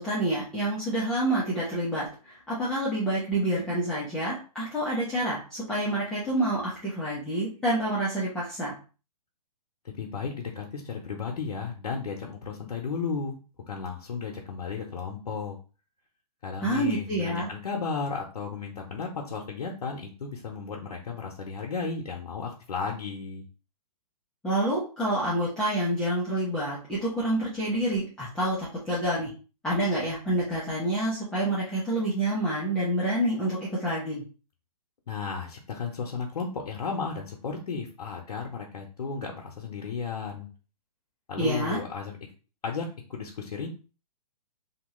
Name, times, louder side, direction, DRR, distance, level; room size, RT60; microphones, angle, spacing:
voice 1, 0.0-8.7 16.6-17.5 24.4-29.3 29.6-34.2 41.4-41.8, right 1 dB, 5° left, -9 dB, 0.5 m, -28 dB
voice 2, 9.8-13.4 13.7-15.6 16.4-23.4 35.1-40.5 41.3-42.1 42.6-43.7, left 5 dB, 85° left, -1 dB, 0.7 m, -34 dB
2.8 x 2.2 x 3.0 m, 0.35 s
hypercardioid pair, 155°, 19 cm